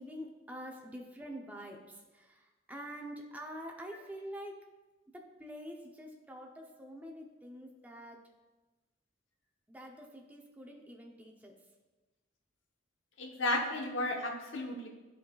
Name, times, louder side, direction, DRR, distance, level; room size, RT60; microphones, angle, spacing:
voice 1, 0.0-4.6 5.1-8.2 9.7-11.5, equal, 10° right, 1 dB, 0.6 m, -46 dB
voice 2, 13.2-14.9, left 1 dB, 80° left, 2 dB, 0.9 m, -33 dB
10.5 x 3.9 x 2.3 m, 1.2 s
head